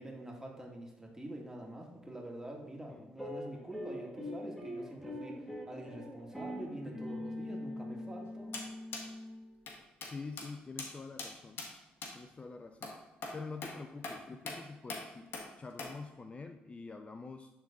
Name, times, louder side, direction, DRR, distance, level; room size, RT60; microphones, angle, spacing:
voice 1, 0.0-8.6, right 1 dB, 15° right, 0 dB, 2.1 m, -46 dB
sound 1, 3.2-9.7, left 1 dB, 5° left, 2.0 m, -43 dB
sound 2, 8.5-8.7 8.9-9.1 9.7-9.8 10.0-10.1 10.4-10.5 10.8-10.9 11.2-11.3 11.6-11.7 12.0-12.1 12.8-12.9 13.2-13.4 13.6-13.7 14.0-14.2 14.5-14.6 14.9-15.0 15.3-15.5 15.8-15.9, left 3 dB, 60° left, 1.5 m, -41 dB
voice 2, 10.0-11.6 12.1-13.0 13.3-17.5, left 4 dB, 30° left, 7 dB, 0.5 m, -46 dB
11.0 x 3.8 x 3.8 m, 1.0 s
supercardioid pair, 65°, 4 cm